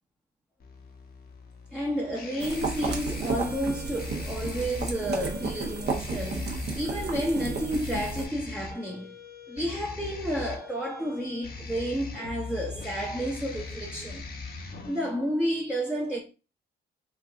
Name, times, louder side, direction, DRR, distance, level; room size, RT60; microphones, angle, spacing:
sound 1, 0.6-15.1, left 4 dB, 50° left, 0.9 m, -41 dB
voice 1, 1.7-9.1 9.5-14.2 14.9-16.2, equal, 5° right, 0.7 m, -31 dB
boil-in-bag, 2.4-8.3, right 4 dB, 55° right, 0.9 m, -33 dB
3.2 x 2.4 x 3.5 m
cardioid pair, 90°, 20 cm